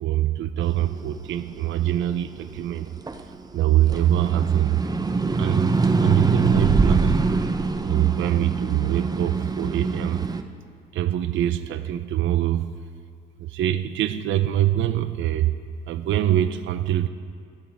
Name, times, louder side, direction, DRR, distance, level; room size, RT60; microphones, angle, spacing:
voice 1, 0.0-2.9 3.5-4.7 5.4-7.2 7.8-10.3 10.9-12.8 13.4-15.5 15.9-17.1, right 12 dB, 75° right, 10 dB, 0.6 m, -23 dB
sound 1, 0.8-3.4 3.8-10.4, right 3 dB, 20° right, 0.6 m, -24 dB
22.5 x 7.7 x 3.5 m, 2.1 s
cardioid pair, 90°, 20 cm